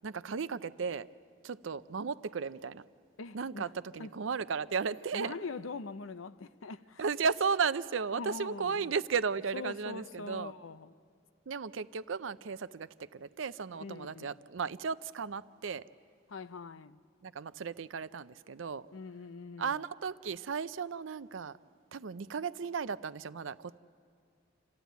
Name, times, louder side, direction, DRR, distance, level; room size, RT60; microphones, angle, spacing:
voice 1, 0.0-1.1 1.4-2.8 3.3-5.3 7.0-10.5 11.5-15.8 17.2-18.9 19.6-21.6 21.9-23.8, right 5 dB, 70° right, 0.5 m, -35 dB
voice 2, 3.2-3.7 4.0-4.1 5.1-7.0 8.1-8.9 9.5-10.9 13.8-14.4 16.3-17.0 18.9-19.8, left 4 dB, 90° left, 0.7 m, -43 dB
27.5 x 15.0 x 9.3 m
head